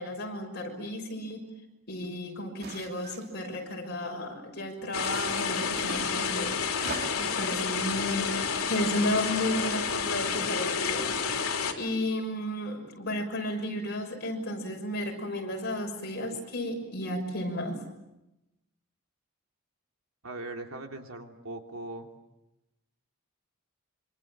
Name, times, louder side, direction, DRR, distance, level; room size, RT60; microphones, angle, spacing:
voice 1, 0.0-1.4 1.9-6.5 7.2-17.8, left 1 dB, 50° left, 2 dB, 6.3 m, -33 dB
sound 1, 2.6-3.5 5.0-6.1 6.7-7.4, right 3 dB, 45° right, 2.7 m, -41 dB
sound 2, 4.9-11.7, left 6 dB, 85° left, 3.3 m, -30 dB
voice 2, 20.2-22.1, right 2 dB, 80° right, 3 dB, 3.0 m, -40 dB
26.0 x 25.5 x 7.5 m, 0.93 s
head